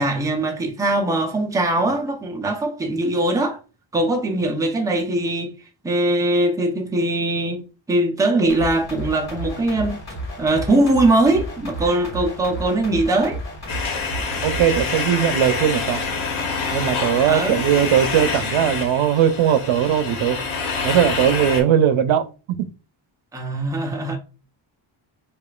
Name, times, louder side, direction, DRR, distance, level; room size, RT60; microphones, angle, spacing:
voice 1, 0.0-3.6 3.9-5.5 5.8-7.6 7.9-10.0 10.4-13.4 17.2-17.6 23.3-24.2, right 2 dB, 10° right, 0.6 m, -21 dB
sound 1, 8.5-14.8, right 1 dB, 35° left, 1.5 m, -32 dB
sound 2, 13.7-21.6, left 4 dB, 90° left, 1.2 m, -26 dB
voice 2, 14.4-16.1 16.7-20.4 20.8-22.2 22.6-22.7, right 9 dB, 85° right, 0.6 m, -19 dB
4.9 x 2.5 x 2.4 m
wide cardioid pair, 150°, 46 cm